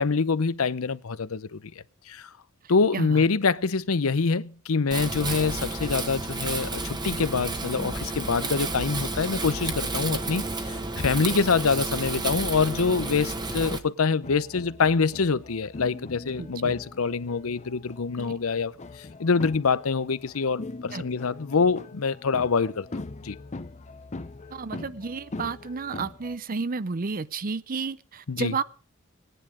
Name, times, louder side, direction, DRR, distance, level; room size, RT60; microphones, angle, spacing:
voice 1, 0.0-1.6 2.1-2.3 2.7-22.9 23.2-23.4 28.3-28.6, left 4 dB, 85° left, 0.7 m, -25 dB
voice 2, 2.9-3.2 16.4-16.7 18.3-18.4 20.9-21.0 24.5-28.6, right 4 dB, 40° right, 0.6 m, -32 dB
Wind, 4.9-13.8, right 2 dB, 20° right, 1.3 m, -31 dB
sound 1, 14.2-26.4, left 2 dB, 35° left, 0.7 m, -41 dB
18.5 x 10.0 x 5.0 m
head